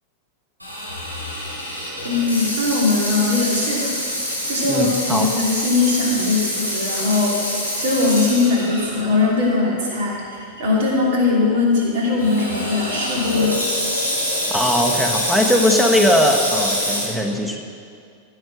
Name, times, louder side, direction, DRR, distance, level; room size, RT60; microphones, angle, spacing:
Water tap faucet / Sink (filling or washing), 0.6-9.0 9.5-9.6 10.3-10.6 12.2-17.1, equal, 90° right, 3.3 m, -25 dB
voice 1, 2.0-3.9 4.5-7.4 7.8-13.7, left 3 dB, 55° right, -3 dB, 2.9 m, -20 dB
voice 2, 4.7-5.3 14.5-17.6, left 1 dB, 5° right, 3 dB, 1.1 m, -19 dB
15.0 x 6.5 x 5.8 m, 2.3 s
figure-of-eight pair, 90°, 0 cm